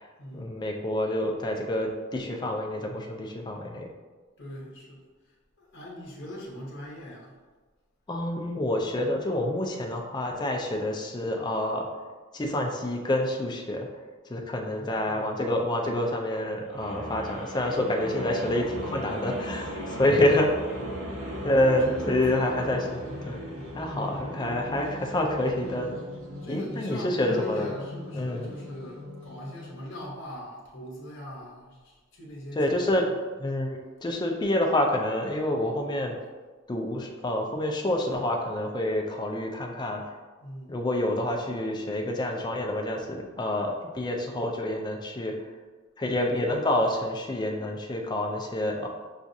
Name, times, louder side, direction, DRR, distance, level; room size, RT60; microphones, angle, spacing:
voice 1, 0.3-3.9 8.1-11.9 12.3-13.9 14.3-20.5 21.4-23.4 23.7-26.0 26.5-27.7 28.1-28.5 32.5-33.0 33.4-36.1 36.7-40.0 40.7-45.3 46.0-48.9, left 1 dB, 20° left, 1 dB, 0.4 m, -27 dB
voice 2, 4.4-5.0 5.6-7.3 14.6-15.3 21.6-23.1 26.4-33.1 40.4-40.7, left 1 dB, 55° left, -4 dB, 1.0 m, -41 dB
sound 1, 16.6-29.9, equal, 85° right, 1.0 m, -38 dB
5.8 x 2.4 x 2.6 m, 1.4 s
head